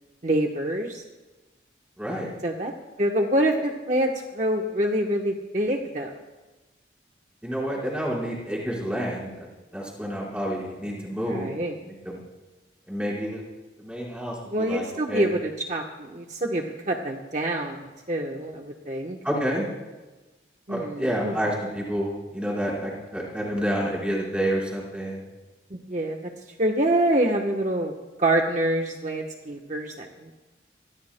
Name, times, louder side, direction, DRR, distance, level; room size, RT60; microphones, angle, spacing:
voice 1, 0.2-1.0 2.4-2.7 3.0-6.1 10.9-11.7 14.5-19.2 20.7-21.4 25.7-26.2 26.5-27.9 28.2-30.3, right 1 dB, 40° right, 1 dB, 1.0 m, -26 dB
voice 2, 2.0-2.3 7.4-9.5 9.7-11.5 11.8-12.2 12.9-13.4 13.8-15.3 19.2-19.7 20.7-25.2, equal, 5° right, -4 dB, 4.4 m, -29 dB
26.5 x 20.5 x 2.2 m, 1.2 s
head